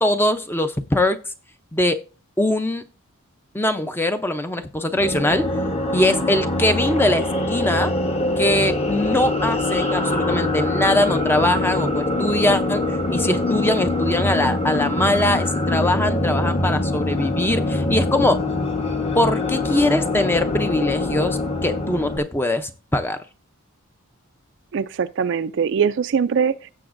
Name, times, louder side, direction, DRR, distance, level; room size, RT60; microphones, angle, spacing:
voice 1, 0.0-1.2 1.7-2.0 2.4-2.9 3.5-5.5 5.9-7.9 8.4-12.8 13.1-18.4 19.2-23.2, left 1 dB, 10° left, 0.5 m, -22 dB
sound 1, 4.9-22.2, left 2 dB, 30° left, 1.0 m, -23 dB
voice 2, 24.7-26.7, right 6 dB, 55° right, 0.4 m, -22 dB
16.0 x 7.0 x 2.5 m
head